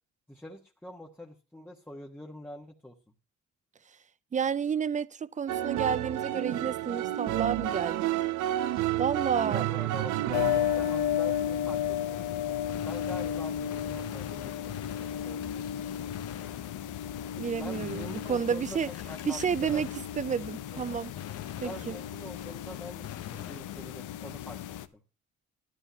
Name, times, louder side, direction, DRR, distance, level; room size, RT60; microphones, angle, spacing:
voice 1, 0.3-3.0 9.3-12.3 12.8-15.8 17.6-18.8 19.0-19.8 20.7-21.0 21.6-23.1 23.3-24.6 24.9-25.0, left 1 dB, 5° left, 1.3 m, -45 dB
voice 2, 4.3-8.1 9.0-9.6 17.4-18.9 19.3-19.9 20.2-21.1 21.6-22.0, right 7 dB, 25° right, 0.5 m, -30 dB
sound 1, 5.5-12.4, right 14 dB, 80° right, 0.6 m, -31 dB
sound 2, 10.3-24.9, left 10 dB, 80° left, 0.7 m, -34 dB
Gunshot gunfire, 12.7-20.5 20.7-24.1, left 10 dB, 55° left, 0.9 m, -46 dB
12.0 x 12.0 x 2.8 m
cardioid pair, 90°, 30 cm